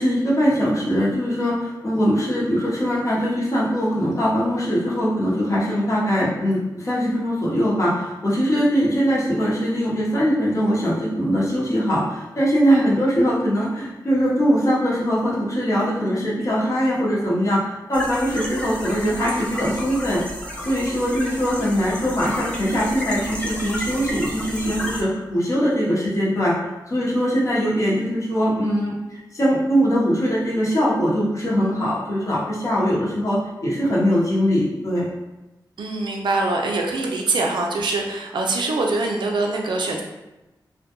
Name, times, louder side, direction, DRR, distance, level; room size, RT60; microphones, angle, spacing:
voice 1, 0.0-20.2 20.6-26.5 26.9-35.1, equal, 45° left, -6 dB, 0.8 m, -21 dB
sound 1, 17.9-25.0, equal, 15° left, 0.4 m, -32 dB
voice 2, 35.8-40.0, right 2 dB, 90° right, 0 dB, 0.4 m, -23 dB
2.2 x 2.2 x 2.9 m, 1.0 s
wide cardioid pair, 90°, 8 cm